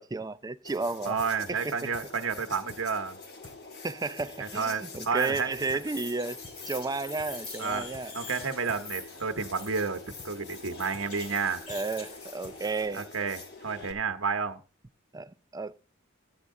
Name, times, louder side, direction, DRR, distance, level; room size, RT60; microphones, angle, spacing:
voice 1, 0.0-1.2 1.5-1.9 3.8-6.4 6.7-8.1 11.7-13.1 15.1-15.7, right 3 dB, 20° right, 0.4 m, -33 dB
sound 1, 0.6-13.9, left 3 dB, 50° left, 1.6 m, -46 dB
voice 2, 1.0-3.2 4.4-5.5 7.6-7.9 8.1-11.7 12.9-14.6, right 5 dB, 65° right, 0.9 m, -31 dB
sound 2, 1.2-1.3 1.6-1.7 1.9-2.1 2.3-2.4 2.7-2.8 3.1-3.2 3.4-3.6 3.8-3.9 4.2-4.3 4.6-4.7 4.9-5.1 5.3-5.4 5.7-5.8 6.1-6.6 6.8-6.9 7.2-7.3 7.6-7.7 7.9-8.1 8.3-8.4 8.7-8.8 9.1-9.2 9.4-9.6 9.8-9.9 10.2-10.3 10.6-10.7 10.9-11.1 11.3-11.4 11.7-11.8 12.1-12.6 12.8-12.9, left 3 dB, 70° left, 4.2 m, -49 dB
sound 3, 5.2-12.8, left 4 dB, 85° left, 3.0 m, -45 dB
13.0 x 8.1 x 3.7 m
head